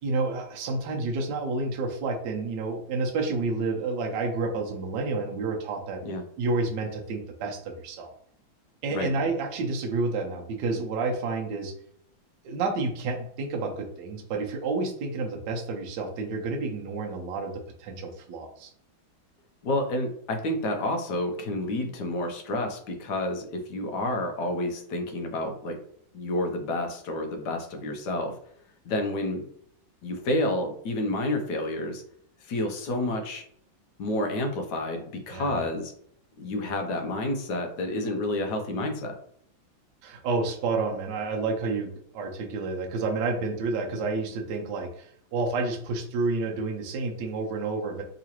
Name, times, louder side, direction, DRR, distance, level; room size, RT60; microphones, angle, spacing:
voice 1, 0.0-6.0 6.4-8.1 8.8-11.7 12.4-17.5 17.8-18.7 35.3-35.6 40.0-48.0, right 3 dB, 70° right, 2 dB, 1.2 m, -30 dB
voice 2, 19.6-25.8 26.1-28.3 28.8-29.4 30.0-32.0 32.5-33.4 34.0-35.9 36.4-39.2, left 1 dB, 65° left, 4 dB, 1.1 m, -29 dB
3.7 x 3.0 x 2.9 m, 0.65 s
omnidirectional pair, 2.2 m